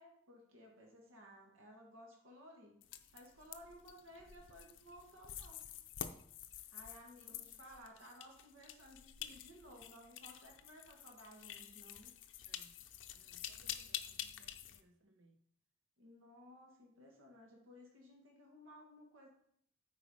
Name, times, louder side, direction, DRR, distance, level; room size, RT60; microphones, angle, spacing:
voice 1, 0.0-2.8 3.1-5.6 6.7-12.1 16.0-19.3, equal, 90° right, 0 dB, 1.7 m, -58 dB
sound 1, 2.8-14.8, left 10 dB, 70° left, 0.6 m, -49 dB
voice 2, 12.5-15.5, right 1 dB, 70° right, 5 dB, 0.9 m, -69 dB
8.1 x 4.6 x 4.8 m, 0.67 s
head